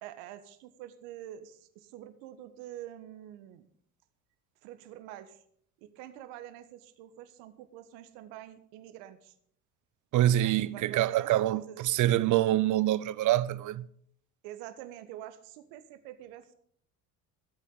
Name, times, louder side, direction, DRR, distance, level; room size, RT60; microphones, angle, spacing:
voice 1, 0.0-3.7 4.6-5.4 5.8-9.3 10.4-12.1 14.4-16.5, right 12 dB, 65° right, 1.4 m, -46 dB
voice 2, 10.1-13.9, right 13 dB, 40° right, 0.7 m, -26 dB
24.5 x 8.2 x 4.0 m
hypercardioid pair, 60°, 45 cm